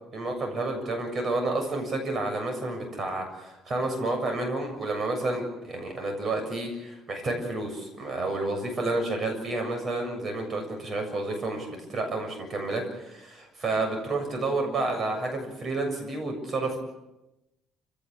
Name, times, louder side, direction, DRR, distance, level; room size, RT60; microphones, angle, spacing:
voice 1, 0.1-16.8, right 2 dB, 35° right, 5 dB, 7.2 m, -30 dB
29.0 x 17.5 x 8.6 m, 0.94 s
cardioid pair, 140°, 0 cm